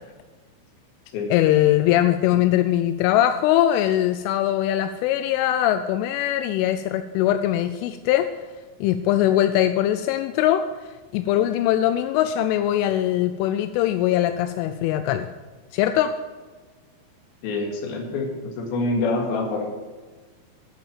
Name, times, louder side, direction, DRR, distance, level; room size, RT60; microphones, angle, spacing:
voice 1, 1.3-8.3 8.8-10.7 11.1-15.3 15.7-16.2, left 12 dB, 85° left, 10 dB, 3.1 m, -21 dB
voice 2, 17.4-19.7, left 2 dB, 60° left, 1 dB, 3.4 m, -26 dB
10.5 x 8.7 x 7.3 m, 1.4 s
omnidirectional pair, 5.6 m